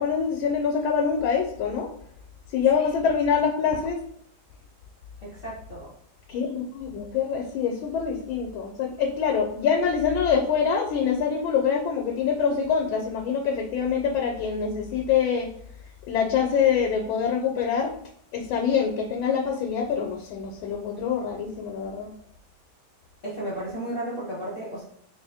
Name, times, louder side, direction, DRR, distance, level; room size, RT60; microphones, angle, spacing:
voice 1, 0.0-1.9 2.5-4.0 6.3-15.5 16.1-17.9 18.3-22.1, left 7 dB, 90° left, 2 dB, 1.4 m, -25 dB
voice 2, 5.2-5.9 23.2-24.8, right 1 dB, 30° left, -9 dB, 1.3 m, -34 dB
3.9 x 2.7 x 3.3 m, 0.65 s
omnidirectional pair, 2.1 m